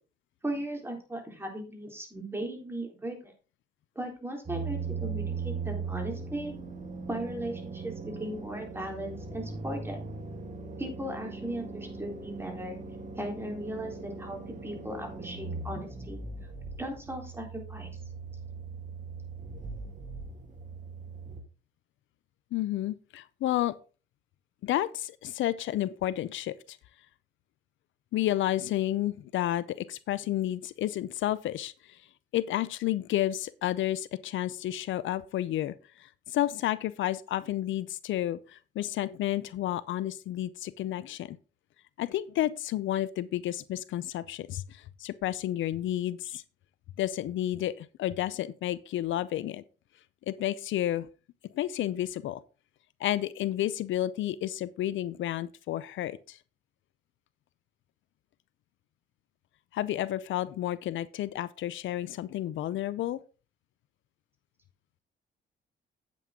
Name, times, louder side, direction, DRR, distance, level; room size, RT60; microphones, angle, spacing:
voice 1, 0.4-3.3 4.0-6.5 7.1-10.0 10.8-12.8 13.2-16.2 16.8-17.9, right 1 dB, 10° right, 3.7 m, -37 dB
sound 1, 4.5-21.4, right 4 dB, 40° right, 2.1 m, -39 dB
voice 2, 22.5-23.8 24.6-26.8 28.1-32.0 32.3-41.4 42.0-46.4 47.0-49.6 50.3-51.1 51.5-52.4 53.0-56.4 59.7-63.2, left 13 dB, 75° left, 0.6 m, -31 dB
9.0 x 8.4 x 3.7 m
cardioid pair, 90°, 20 cm